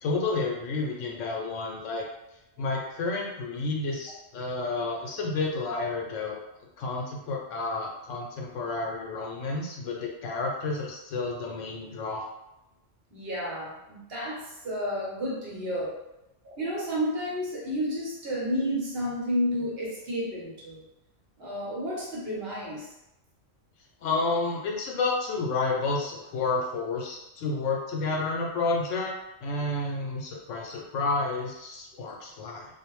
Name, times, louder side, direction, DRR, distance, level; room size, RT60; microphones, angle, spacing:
voice 1, 0.0-2.0 2.6-6.4 6.8-12.3 24.0-29.1 29.4-32.7, left 3 dB, 80° left, -1 dB, 1.0 m, -30 dB
voice 2, 13.1-16.0 16.4-20.8 21.4-22.9, equal, 55° right, -5 dB, 0.9 m, -31 dB
2.4 x 2.0 x 3.0 m, 0.89 s
omnidirectional pair, 1.3 m